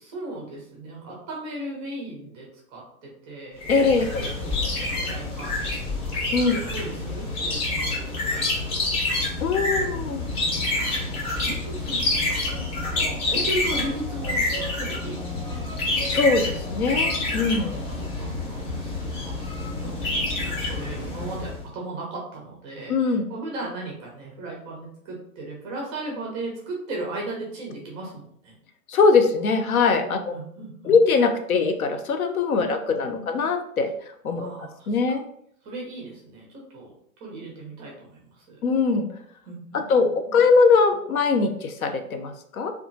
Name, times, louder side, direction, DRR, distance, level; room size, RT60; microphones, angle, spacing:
voice 1, 0.0-3.7 4.1-5.8 6.1-6.2 6.5-9.4 10.3-15.6 17.5-19.9 20.4-28.6 30.1-31.0 32.6-33.3 34.4-35.0 35.6-36.9 37.2-38.6 39.5-40.4, right 2 dB, 15° right, -2 dB, 0.4 m, -37 dB
sound 1, 3.6-21.6, left 2 dB, 25° left, 0.7 m, -27 dB
voice 2, 3.7-4.1 6.3-6.5 9.4-10.2 16.1-17.7 22.9-23.3 28.9-30.2 30.8-33.9 34.2-34.5 34.9-35.3 38.6-39.1 39.9-42.7, left 4 dB, 75° left, 6 dB, 0.6 m, -21 dB
2.8 x 2.3 x 2.6 m, 0.66 s
figure-of-eight pair, 110°, 44 cm